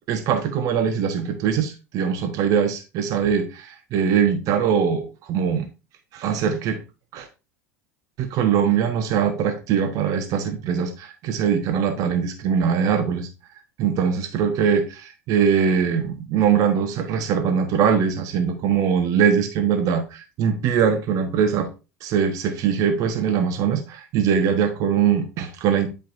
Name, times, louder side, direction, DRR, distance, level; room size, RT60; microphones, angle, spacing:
voice 1, 0.1-5.7 6.1-6.8 7.1-7.3 8.2-13.3 13.8-21.7 22.0-25.9, right 7 dB, 45° right, 6 dB, 1.3 m, -22 dB
10.5 x 5.2 x 2.6 m, 0.30 s
figure-of-eight pair, 80°, 8 cm